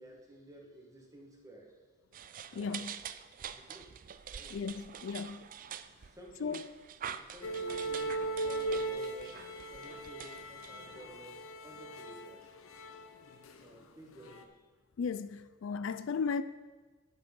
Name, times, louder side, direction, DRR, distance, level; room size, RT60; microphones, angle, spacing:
voice 1, 0.0-1.8 2.5-2.9 3.4-3.9 4.3-4.5 6.0-6.6 7.0-12.5 13.6-14.5, right 1 dB, 15° right, 1.6 m, -53 dB
sound 1, 2.1-11.1, right 8 dB, 40° right, 0.4 m, -46 dB
voice 2, 2.5-2.9 4.5-5.5 6.4-6.6 15.0-16.4, left 5 dB, 65° left, 0.4 m, -35 dB
sound 2, 7.4-13.8 14.1-14.4, right 2 dB, 90° left, 0.8 m, -39 dB
9.6 x 7.6 x 5.3 m
head